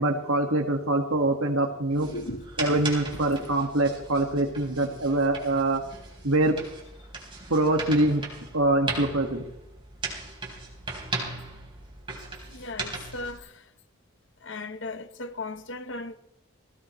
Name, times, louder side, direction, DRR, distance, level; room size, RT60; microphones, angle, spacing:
voice 1, 0.0-2.1 2.6-5.8 6.2-6.5 7.5-8.2 8.5-9.4, right 2 dB, 80° right, 1.8 m, -24 dB
sound 1, 1.9-13.4, right 3 dB, 25° right, 4.1 m, -38 dB
voice 2, 2.1-2.5 2.7-2.9 3.1-3.6 12.5-13.6 14.4-16.1, left 2 dB, 60° left, 1.1 m, -37 dB
20.0 x 17.5 x 3.2 m
head